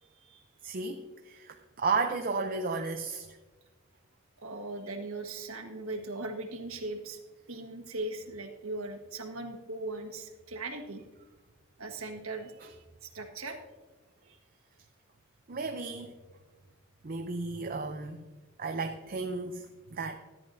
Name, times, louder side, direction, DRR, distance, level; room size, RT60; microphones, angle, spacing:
voice 1, 0.0-0.4 4.4-7.2 7.5-11.0 11.8-13.6 14.2-14.4, right 2 dB, 85° right, 3 dB, 1.5 m, -39 dB
voice 2, 0.6-3.4 12.6-12.7 15.5-16.1 17.0-18.2 18.6-20.1, right 4 dB, 45° right, 5 dB, 0.6 m, -33 dB
14.0 x 10.5 x 2.7 m, 1.3 s
head